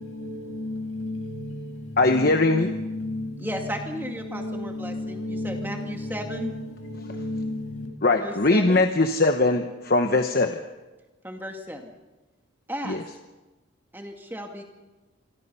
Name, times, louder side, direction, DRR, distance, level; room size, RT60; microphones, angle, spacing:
voice 1, 0.0-7.9, left 2 dB, 85° left, 7.3 m, -33 dB
voice 2, 2.0-2.7 7.0-7.1 8.0-10.6 12.8-13.0, left 2 dB, 45° left, 1.0 m, -21 dB
voice 3, 3.4-6.6 8.2-8.8 11.2-11.9 12.7-13.0 13.9-14.6, equal, 10° right, 2.1 m, -35 dB
28.0 x 23.0 x 5.6 m
head